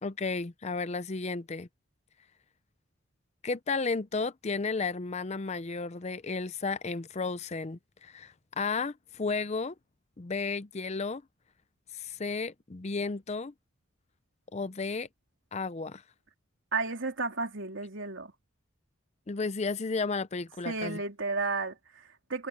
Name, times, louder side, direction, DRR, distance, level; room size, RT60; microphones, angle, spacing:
voice 1, 0.0-1.7 3.4-9.7 10.2-11.2 11.9-13.5 14.5-15.1 15.5-16.0 19.3-21.0, left 4 dB, 35° left, 0.5 m, -33 dB
voice 2, 16.7-18.3 20.7-22.5, right 3 dB, 70° right, 3.6 m, -33 dB
head